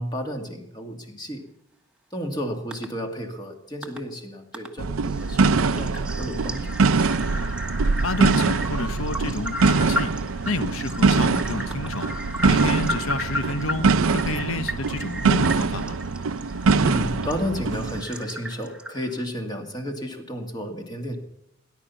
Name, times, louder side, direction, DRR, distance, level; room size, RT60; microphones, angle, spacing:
voice 1, 0.0-1.4 2.1-6.7 16.8-21.2, equal, 20° left, 3 dB, 2.2 m, -32 dB
sound 1, 2.7-2.9 3.8-4.0 4.5-4.7 5.0-19.2, left 1 dB, 5° right, 1.4 m, -35 dB
sound 2, 4.8-18.0, right 4 dB, 90° right, 0.6 m, -23 dB
voice 2, 8.0-10.1 10.5-12.1 12.4-16.0, left 2 dB, 90° left, 10 dB, 1.1 m, -30 dB
18.5 x 11.0 x 7.1 m, 0.79 s
head